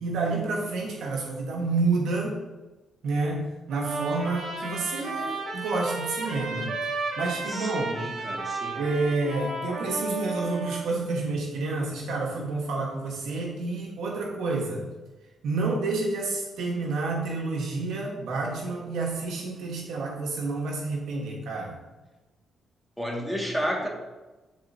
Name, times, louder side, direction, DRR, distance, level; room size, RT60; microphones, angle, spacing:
voice 1, 0.0-2.4 3.0-6.7 7.2-8.0 8.7-14.8 15.4-21.8, right 3 dB, 85° right, -1 dB, 1.3 m, -29 dB
Trumpet, 3.7-10.9, right 3 dB, 65° right, 2.2 m, -33 dB
voice 2, 7.5-8.8 23.0-23.9, equal, ahead, -2 dB, 1.9 m, -31 dB
10.5 x 4.3 x 2.7 m, 1.1 s
cardioid pair, 80°, 0 cm